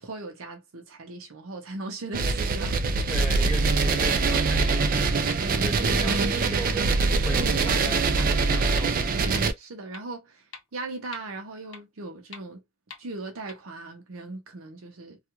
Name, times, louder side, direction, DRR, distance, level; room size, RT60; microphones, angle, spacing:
voice 1, 0.0-3.1 3.4-3.6 7.4-8.4 9.6-12.6 13.0-15.2, right 3 dB, 75° right, 0.7 m, -38 dB
sound 1, 2.1-9.5, right 4 dB, 40° right, 0.4 m, -23 dB
voice 2, 3.1-9.2, equal, ahead, 0.7 m, -38 dB
sound 2, 4.1-4.2 4.7-4.8 5.3-5.4 5.9-6.0 6.4-6.5 7.0-7.1 7.6-7.7 8.2-8.3 8.8-8.9 9.3-9.4 9.9-10.0 10.5-10.6 11.1-11.2 11.7-11.8 12.3-12.4 12.9-13.0 13.5-13.6, left 6 dB, 60° left, 0.6 m, -42 dB
2.3 x 2.3 x 2.9 m
head